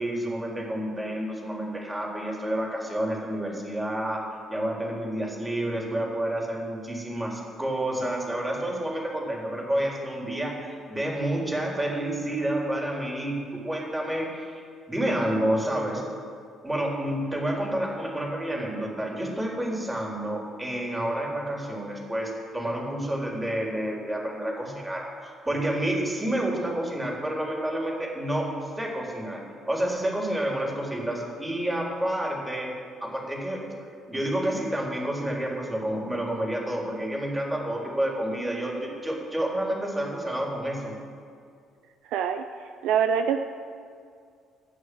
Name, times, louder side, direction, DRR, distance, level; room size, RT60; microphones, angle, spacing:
voice 1, 0.0-4.2 4.5-14.6 14.9-16.0 16.6-28.5 28.8-29.4 29.7-32.7 33.0-33.6 34.1-40.9, right 1 dB, 15° right, -2 dB, 3.9 m, -29 dB
voice 2, 42.1-43.4, right 7 dB, 65° right, 7 dB, 0.5 m, -25 dB
16.0 x 6.3 x 7.9 m, 2.2 s
figure-of-eight pair, 45°, 0 cm